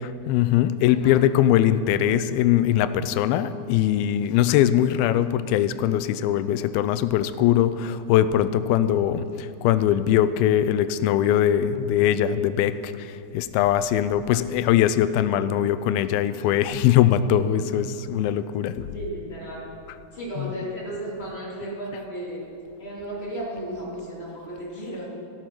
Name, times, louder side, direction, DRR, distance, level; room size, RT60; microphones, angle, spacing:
voice 1, 0.3-18.9 20.4-20.5, left 11 dB, 80° left, 12 dB, 2.3 m, -21 dB
voice 2, 18.9-19.7 20.1-22.4 22.8-25.1, right 1 dB, 20° left, -6 dB, 2.5 m, -34 dB
15.5 x 8.8 x 6.1 m, 2.6 s
omnidirectional pair, 4.4 m